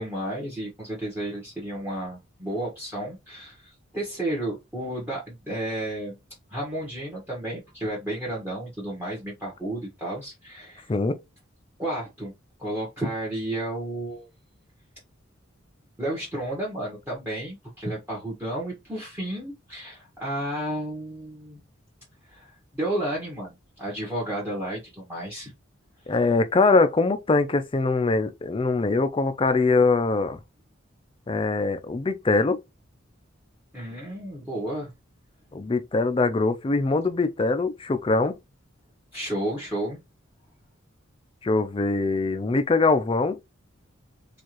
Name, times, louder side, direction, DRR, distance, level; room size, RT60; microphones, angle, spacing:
voice 1, 0.0-6.2 6.5-10.9 11.8-12.3 12.6-14.3 16.0-21.6 22.3-25.5 33.7-34.9 39.1-40.0, right 1 dB, 10° right, 1.2 m, -32 dB
voice 2, 26.1-30.4 31.3-32.6 35.5-38.3 41.4-43.4, left 3 dB, 25° left, 0.4 m, -22 dB
4.5 x 2.5 x 3.0 m
head